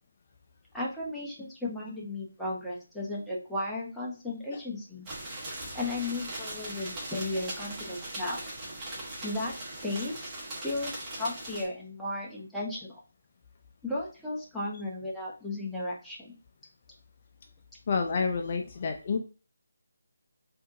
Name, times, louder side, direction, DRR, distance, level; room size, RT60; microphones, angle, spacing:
voice 1, 0.7-5.1 5.7-8.4 9.2-9.5 9.8-10.3 10.6-13.0 13.8-16.3, left 2 dB, ahead, -7 dB, 0.7 m, -35 dB
sound 1, 5.1-11.7, right 1 dB, 20° right, 1.0 m, -39 dB
voice 2, 17.9-19.2, left 5 dB, 40° left, 3 dB, 0.4 m, -29 dB
3.6 x 2.7 x 2.5 m, 0.36 s
figure-of-eight pair, 155°, 0 cm